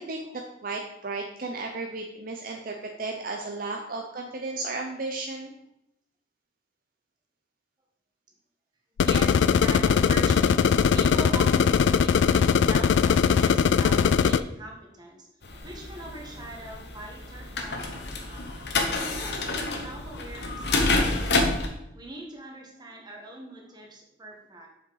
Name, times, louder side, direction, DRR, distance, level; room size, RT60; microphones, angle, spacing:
voice 1, 0.0-5.5, right 3 dB, 50° right, 1 dB, 0.7 m, -34 dB
sound 1, 9.0-14.4, left 6 dB, 80° left, 0.3 m, -20 dB
voice 2, 9.1-15.3 15.6-18.5 18.9-21.5 21.9-24.7, right 1 dB, 25° right, 0 dB, 1.4 m, -41 dB
sound 2, 15.4-21.7, left 2 dB, 60° left, 1.0 m, -28 dB
7.2 x 5.6 x 4.0 m, 0.83 s
head